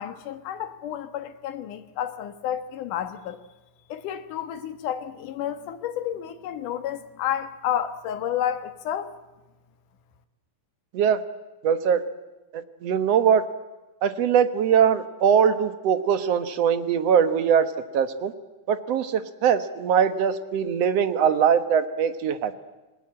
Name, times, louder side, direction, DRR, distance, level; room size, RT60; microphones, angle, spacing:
voice 1, 0.0-3.4 3.9-9.1, left 10 dB, 75° left, 2.9 m, -31 dB
voice 2, 11.6-12.0 12.5-13.4 14.0-18.3 18.7-22.6, right 7 dB, 60° right, 2.0 m, -22 dB
27.5 x 20.5 x 8.7 m
omnidirectional pair, 3.7 m